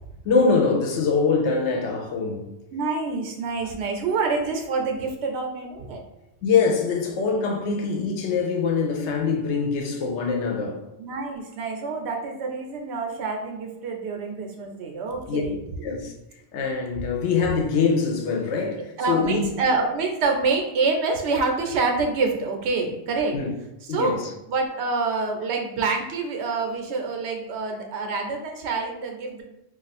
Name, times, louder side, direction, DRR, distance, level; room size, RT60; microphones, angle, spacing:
voice 1, 0.2-2.5 6.4-10.8 15.3-15.4 15.8-16.1 16.5-19.5 23.3-23.5 23.9-24.3, left 5 dB, 90° left, 0.9 m, -23 dB
voice 2, 2.7-6.0 11.0-15.9 19.0-23.4 23.9-24.2 24.5-29.4, right 4 dB, 80° right, 0.9 m, -26 dB
2.5 x 2.4 x 4.0 m
omnidirectional pair, 1.1 m